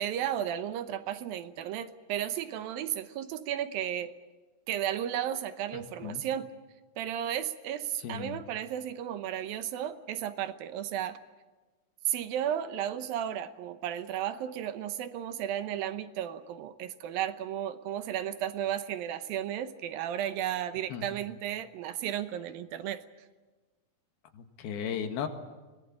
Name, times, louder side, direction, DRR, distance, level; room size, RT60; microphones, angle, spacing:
voice 1, 0.0-4.1 4.7-6.5 7.0-11.2 12.1-23.0, right 10 dB, 75° right, 11 dB, 2.6 m, -34 dB
voice 2, 8.0-8.4 20.9-21.0 24.4-25.3, left 8 dB, 85° left, 7 dB, 3.6 m, -35 dB
23.5 x 19.0 x 9.9 m, 1.3 s
omnidirectional pair, 4.4 m